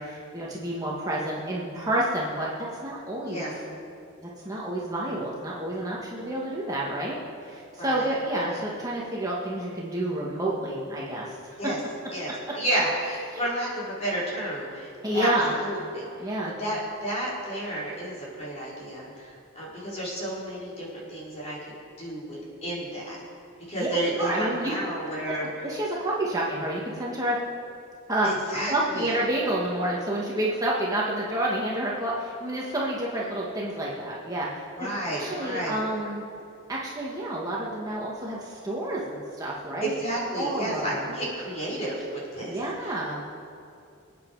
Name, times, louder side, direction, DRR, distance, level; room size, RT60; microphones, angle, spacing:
voice 1, 0.0-2.5 2.8-3.5 4.2-11.5 13.3-13.4 15.0-15.6 16.2-16.5 23.8-23.9 24.2-24.7 25.4-27.4 28.1-28.3 28.7-34.5 34.8-34.9 35.2-36.2 36.7-40.0 40.3-41.0 42.5-43.2, right 1 dB, 15° right, -5 dB, 1.6 m, -29 dB
voice 2, 3.3-3.6 7.8-8.1 8.3-8.6 11.6-11.8 12.1-16.1 16.6-21.7 22.0-23.2 23.7-25.5 28.2-29.2 34.8-35.8 39.8-42.9, right 1 dB, 30° left, -6 dB, 4.7 m, -31 dB
26.0 x 9.3 x 4.8 m, 2.5 s
head